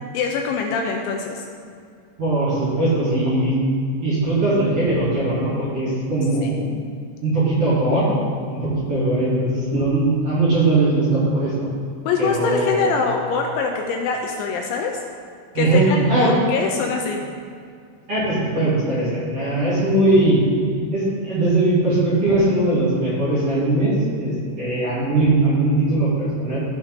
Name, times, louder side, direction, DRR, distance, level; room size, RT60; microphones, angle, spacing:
voice 1, 0.1-1.4 6.4-6.8 12.1-15.0 15.6-17.2, left 5 dB, 80° left, 2 dB, 2.8 m, -23 dB
voice 2, 2.2-3.5 4.0-6.5 7.2-8.1 8.5-11.5 12.2-12.9 15.5-16.3 18.1-20.4 20.9-26.6, right 2 dB, 40° right, -11 dB, 3.0 m, -20 dB
14.5 x 5.6 x 3.7 m, 2.3 s
omnidirectional pair, 5.6 m